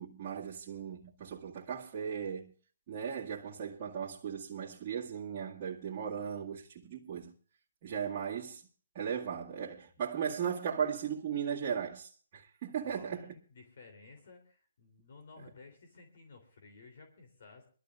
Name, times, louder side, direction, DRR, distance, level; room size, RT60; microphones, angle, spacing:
voice 1, 0.0-2.5 2.9-7.3 7.8-8.6 8.9-13.3, right 7 dB, 35° right, 2.1 m, -37 dB
voice 2, 12.8-17.6, left 4 dB, 60° left, 3.5 m, -55 dB
24.5 x 13.0 x 2.6 m
hypercardioid pair, 155°, 0 cm